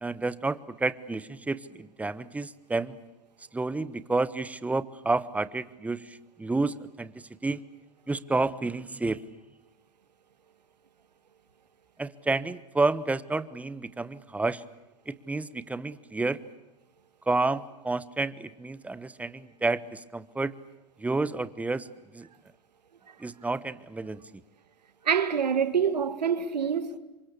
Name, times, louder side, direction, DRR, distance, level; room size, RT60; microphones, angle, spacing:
voice 1, 0.0-3.0 3.5-7.1 7.4-7.6 8.1-9.2 12.0-14.6 15.1-16.4 17.3-20.5 21.0-21.9 22.1-22.3 23.2-24.2, right 3 dB, 5° right, 1.1 m, -30 dB
voice 2, 25.0-27.0, right 7 dB, 90° right, 2.2 m, -26 dB
27.5 x 24.0 x 8.4 m
hypercardioid pair, 115°, 21 cm